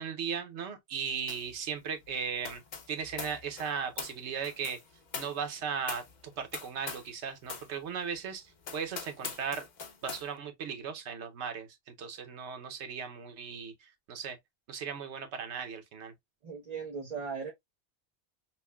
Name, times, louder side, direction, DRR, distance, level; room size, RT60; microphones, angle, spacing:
voice 1, 0.0-2.6 2.9-4.8 5.1-9.7 10.0-11.7 12.0-14.4 14.7-16.1, right 6 dB, 90° right, 1.1 m, -37 dB
sound 1, 1.3-1.6 1.8-7.2 7.4-7.7 8.1-8.2 8.6-10.3, left 5 dB, 50° left, 0.7 m, -43 dB
voice 2, 16.4-17.5, right 5 dB, 40° right, 0.8 m, -38 dB
5.6 x 2.1 x 2.2 m
omnidirectional pair, 1.1 m